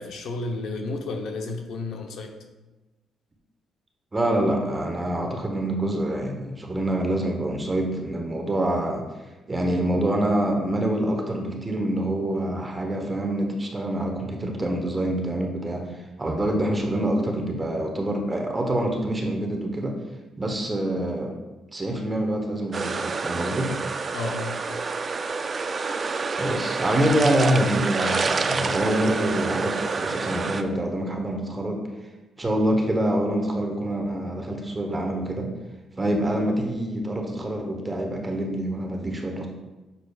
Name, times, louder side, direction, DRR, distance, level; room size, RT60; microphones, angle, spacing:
voice 1, 0.0-2.3 24.1-24.8, left 3 dB, 70° left, 4 dB, 0.8 m, -32 dB
voice 2, 4.1-9.0 9.5-15.9 16.2-19.9 20.4-21.3 21.7-23.7 26.4-31.8 32.4-35.5 36.0-39.5, right 1 dB, 20° right, 2 dB, 1.0 m, -26 dB
sound 1, 22.7-30.6, right 4 dB, 40° right, 0.4 m, -28 dB
6.9 x 5.9 x 2.4 m, 1.1 s
cardioid pair, 90°, 0 cm